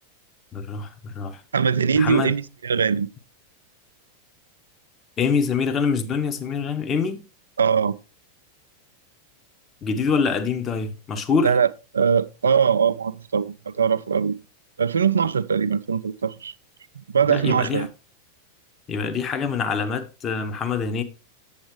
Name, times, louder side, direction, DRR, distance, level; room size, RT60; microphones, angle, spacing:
voice 1, 0.5-1.4 1.9-2.3 5.2-7.2 9.8-11.5 17.3-17.9 18.9-21.0, left 5 dB, 25° left, 0.9 m, -25 dB
voice 2, 1.5-3.1 7.6-7.9 11.4-11.7 11.9-14.4 14.8-16.5 17.0-17.9, right 6 dB, 70° right, 0.4 m, -21 dB
7.9 x 7.1 x 3.1 m
figure-of-eight pair, 90°, 0 cm